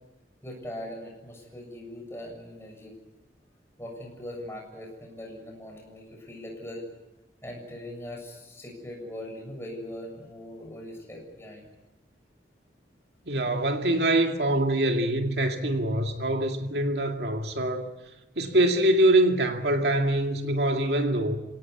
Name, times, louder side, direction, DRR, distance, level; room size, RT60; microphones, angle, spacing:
voice 1, 0.4-3.0 3.8-6.9 7.4-11.7, left 1 dB, 15° left, 7.3 m, -40 dB
voice 2, 13.3-17.9 18.4-21.4, right 1 dB, 70° right, 2.3 m, -24 dB
29.0 x 18.0 x 9.6 m
head